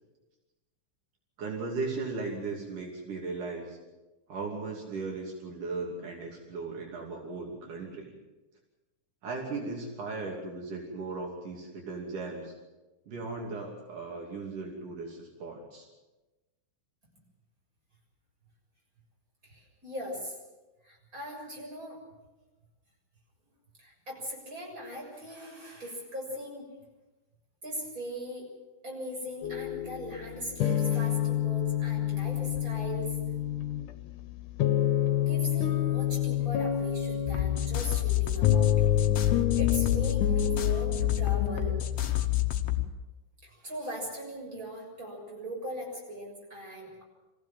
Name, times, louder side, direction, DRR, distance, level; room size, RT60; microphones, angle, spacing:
voice 1, 1.4-3.8 4.3-8.1 9.2-12.5 13.1-15.9, right 3 dB, 75° right, -1 dB, 4.3 m, -37 dB
voice 2, 19.4-20.4 20.8-22.0 23.8-26.7 27.6-28.5 28.8-33.2 35.2-38.9 39.5-41.7 43.4-47.0, equal, 25° right, -1 dB, 7.2 m, -39 dB
sound 1, 29.4-41.7, left 11 dB, 75° left, 2.4 m, -28 dB
sound 2, 37.2-42.9, left 12 dB, 60° left, 2.1 m, -28 dB
25.5 x 15.5 x 7.5 m, 1.1 s
omnidirectional pair, 3.7 m